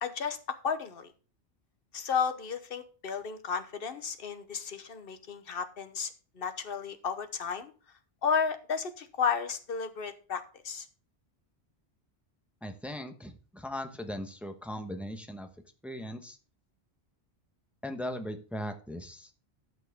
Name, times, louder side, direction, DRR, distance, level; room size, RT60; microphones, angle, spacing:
voice 1, 0.0-0.4 0.6-1.1 1.9-6.1 6.4-7.7 8.2-10.9, left 6 dB, 60° left, 10 dB, 1.2 m, -33 dB
voice 2, 12.6-15.5 15.8-16.4 17.8-19.3, equal, ahead, 6 dB, 1.0 m, -38 dB
12.5 x 6.1 x 3.5 m, 0.36 s
omnidirectional pair, 1.1 m